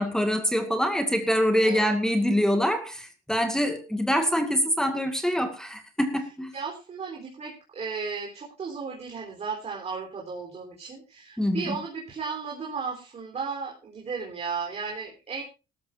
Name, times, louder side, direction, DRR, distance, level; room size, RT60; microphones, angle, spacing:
voice 1, 0.0-6.5 11.4-11.8, equal, 5° left, 2.1 m, -25 dB
voice 2, 6.5-15.4, right 5 dB, 40° right, 3.9 m, -35 dB
18.5 x 13.0 x 2.7 m
cardioid pair, 110°, 17 cm